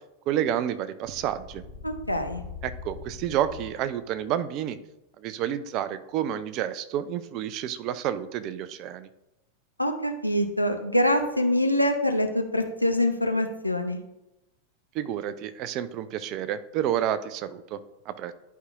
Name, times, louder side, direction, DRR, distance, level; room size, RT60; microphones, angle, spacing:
voice 1, 0.3-1.6 2.6-4.8 5.2-9.1 14.9-18.3, right 10 dB, 40° right, 13 dB, 0.4 m, -30 dB
sound 1, 1.0-4.0, left 6 dB, 65° left, 1.0 m, -42 dB
voice 2, 1.8-2.4 9.8-14.0, left 1 dB, 90° left, 5 dB, 0.6 m, -25 dB
11.0 x 4.7 x 2.4 m, 0.93 s
figure-of-eight pair, 90°, 0 cm